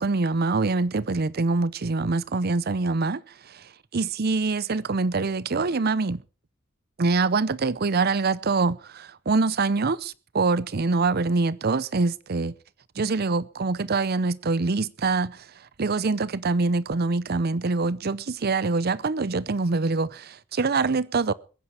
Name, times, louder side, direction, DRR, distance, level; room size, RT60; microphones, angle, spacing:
voice 1, 0.0-3.2 3.5-6.2 7.0-12.5 13.0-15.5 15.8-21.3, right 3 dB, 50° right, 0.6 m, -25 dB
22.0 x 9.8 x 4.8 m
head